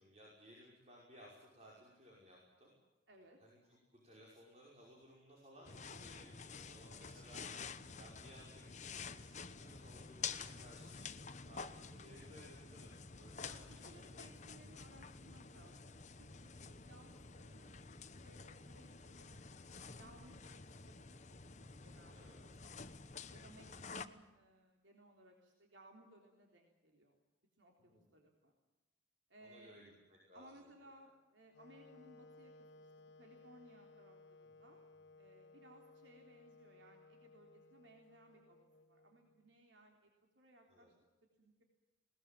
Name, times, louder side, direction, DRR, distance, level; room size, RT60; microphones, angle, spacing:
voice 1, 0.0-2.7 3.4-11.1 11.4-14.3 16.4-16.7 22.1-22.5 27.8-28.1 29.4-30.5 34.4-34.5 40.7-40.9, equal, 35° right, -3 dB, 5.7 m, -61 dB
voice 2, 3.1-3.4 7.5-8.0 13.4-22.9 23.3-27.2 27.6-28.5 29.3-29.9 30.3-34.8 35.2-40.1 40.4-41.0 41.4-41.6, right 1 dB, 80° right, 1 dB, 3.6 m, -63 dB
sound 1, 5.6-24.0, left 5 dB, 40° left, 1.1 m, -50 dB
Wind instrument woodwind instrument, 31.5-39.5, left 3 dB, 70° left, 1.3 m, -61 dB
21.0 x 20.0 x 9.1 m, 1.1 s
head